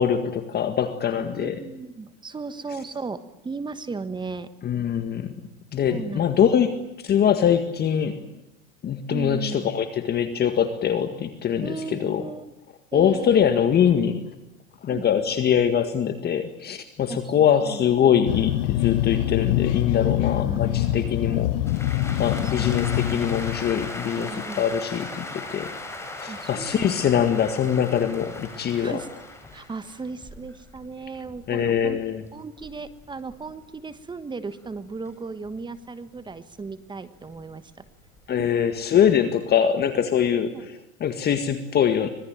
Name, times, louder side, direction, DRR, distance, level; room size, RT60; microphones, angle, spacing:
voice 1, 0.0-1.6 4.6-5.3 5.7-8.2 8.8-12.3 12.9-14.2 14.8-25.7 26.1-29.0 31.5-32.2 38.3-42.1, left 8 dB, 25° left, 9 dB, 1.9 m, -23 dB
voice 2, 1.2-4.5 5.9-6.3 9.1-9.7 11.6-12.5 12.9-13.5 14.9-15.0 17.1-17.2 17.6-17.8 20.3-21.4 22.4-22.7 24.1-24.6 26.3-27.0 28.7-29.1 29.5-32.0 32.3-37.6 38.3-38.5 40.5-40.7, right 4 dB, 10° right, 13 dB, 1.3 m, -36 dB
sound 1, 18.3-24.0, left 14 dB, 55° left, 1.0 m, -25 dB
sound 2, 21.7-34.1 34.5-36.7 37.1-38.8, left 2 dB, 5° left, 5.3 m, -38 dB
25.5 x 20.5 x 9.1 m, 0.89 s
supercardioid pair, 130°, 39 cm